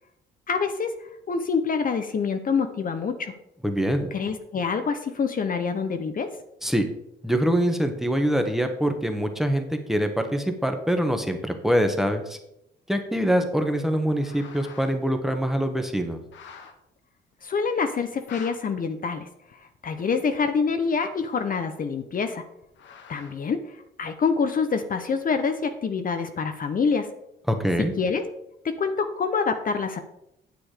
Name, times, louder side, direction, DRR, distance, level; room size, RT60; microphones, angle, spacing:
voice 1, 0.5-0.9 1.3-3.3 4.1-6.3 17.4-19.3 19.6-22.4 23.1-27.1 28.0-28.2 28.6-30.0, left 5 dB, 45° left, 7 dB, 0.9 m, -26 dB
voice 2, 3.6-4.1 6.6-6.8 7.2-12.4 12.9-16.2 27.5-27.9, equal, ahead, 6 dB, 1.4 m, -24 dB
sound 1, 14.1-15.0 15.4-15.5 16.2-16.7 17.3-17.4 18.0-18.5 19.5-19.6 20.4-21.9 22.6-23.5, left 6 dB, 70° left, 1.4 m, -47 dB
9.3 x 7.1 x 5.0 m, 0.81 s
cardioid pair, 90°, 20 cm